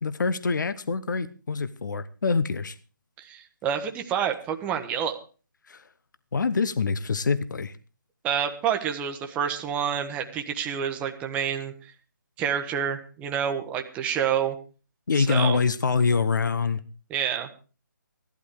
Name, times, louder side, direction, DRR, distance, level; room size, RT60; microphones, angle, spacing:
voice 1, 0.0-2.7 5.7-5.8 6.3-7.7 15.1-16.8, left 5 dB, 65° left, 14 dB, 1.1 m, -25 dB
voice 2, 3.2-5.2 8.2-11.9 12.4-14.6 15.2-15.6 17.1-17.5, right 8 dB, 10° right, 6 dB, 1.1 m, -28 dB
14.5 x 12.0 x 4.9 m, 0.36 s
figure-of-eight pair, 155°, 11 cm